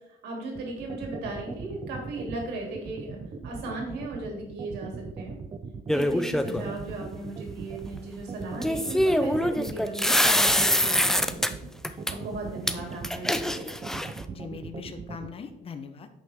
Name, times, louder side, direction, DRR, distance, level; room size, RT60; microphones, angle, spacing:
voice 1, 0.2-3.2 3.4-5.3 5.9-11.5 11.9-13.6, right 2 dB, 80° right, 0 dB, 3.0 m, -36 dB
sound 1, 0.5-15.3, right 5 dB, 30° right, 0.7 m, -39 dB
sound 2, 5.9-6.6 8.6-11.5 11.8-12.1 12.7-12.8 13.0-14.2, equal, 5° left, 0.5 m, -24 dB
voice 2, 6.5-6.8 14.3-16.1, left 5 dB, 35° left, 8 dB, 0.8 m, -40 dB
9.8 x 6.3 x 3.6 m, 0.89 s
cardioid pair, 110°, 17 cm